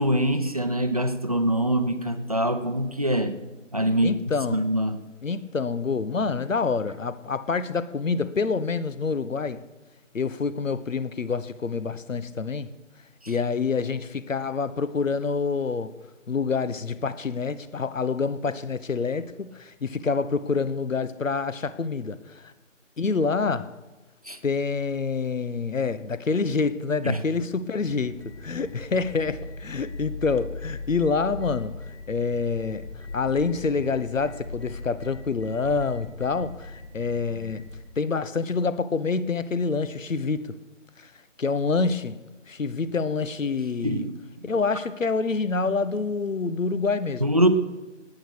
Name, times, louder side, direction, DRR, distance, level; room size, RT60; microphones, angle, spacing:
voice 1, 0.0-3.4 3.7-4.1 4.5-5.0 13.2-13.3 24.2-24.4 27.0-27.2 43.8-44.1 47.2-47.5, right 1 dB, 30° right, 0.7 m, -24 dB
voice 2, 4.0-4.6 5.2-9.6 10.1-12.7 13.3-15.9 16.3-22.5 23.0-23.7 24.4-31.8 32.1-32.9 33.1-37.7 38.0-40.6 41.0-41.1 41.4-44.0 44.4-47.2, left 4 dB, 80° left, 1.1 m, -27 dB
sound 1, 27.8-37.8, left 3 dB, 55° left, 3.6 m, -40 dB
19.5 x 9.0 x 6.4 m
figure-of-eight pair, 175°, 38 cm